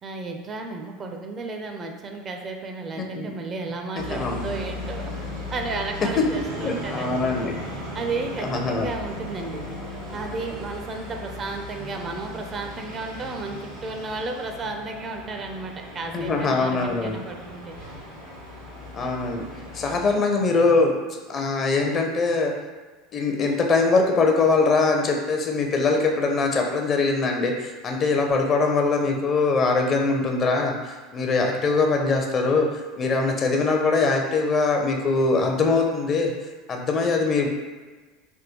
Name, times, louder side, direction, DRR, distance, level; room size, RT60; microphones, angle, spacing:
voice 1, 0.0-5.1 5.5-7.3 7.7-9.6 10.1-17.8, right 3 dB, 35° right, 3 dB, 0.4 m, -33 dB
voice 2, 3.0-3.3 4.1-4.5 6.5-7.5 8.4-8.9 16.1-17.2 18.9-19.5 19.7-20.9 21.3-22.5 23.1-36.3 36.7-37.5, left 3 dB, 40° left, 2 dB, 0.5 m, -22 dB
sound 1, 4.0-20.1, left 1 dB, 90° right, 1.3 m, -37 dB
3.5 x 2.2 x 2.9 m, 1.3 s
hypercardioid pair, 85°, 0 cm